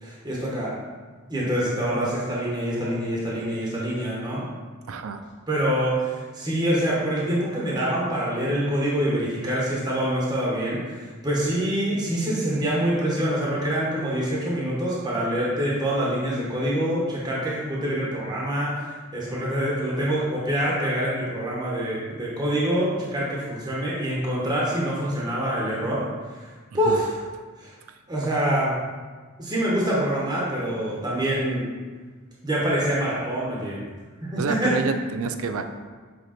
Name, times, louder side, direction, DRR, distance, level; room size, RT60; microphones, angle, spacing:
voice 1, 0.0-0.7 1.3-4.5 5.5-26.1 26.3-26.5 26.7-27.2 27.6-27.7 28.1-28.8 29.4-31.7 32.4-33.8 34.2-34.8, right 1 dB, 20° right, -6 dB, 1.1 m, -25 dB
voice 2, 4.9-5.2 26.8-27.0 34.4-35.6, right 4 dB, 70° right, 8 dB, 0.4 m, -28 dB
7.6 x 3.2 x 4.2 m, 1.4 s
head